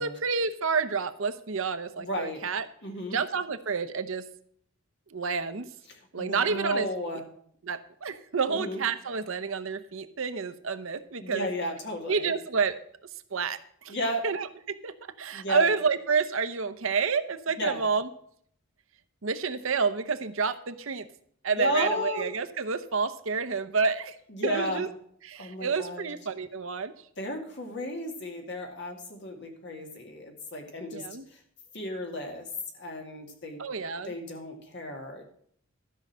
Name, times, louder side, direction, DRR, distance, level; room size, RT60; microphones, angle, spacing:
voice 1, 0.0-2.7 3.1-4.2 5.1-5.7 6.1-6.9 7.6-11.5 12.1-12.8 13.3-14.0 14.2-18.1 19.2-21.1 21.4-24.2 24.4-24.9 25.2-26.9 30.9-31.3 33.6-34.1, right 5 dB, 65° right, 12 dB, 0.7 m, -29 dB
voice 2, 2.0-2.4 2.8-3.2 6.2-7.2 8.5-8.8 11.2-12.3 13.9-14.2 15.3-15.7 17.5-17.8 21.5-22.2 24.3-24.8 25.4-26.1 27.2-31.0 31.3-31.4 31.7-32.5 32.7-33.6 34.0-35.2, left 1 dB, 50° left, 2 dB, 2.3 m, -33 dB
13.0 x 5.5 x 7.3 m, 0.63 s
head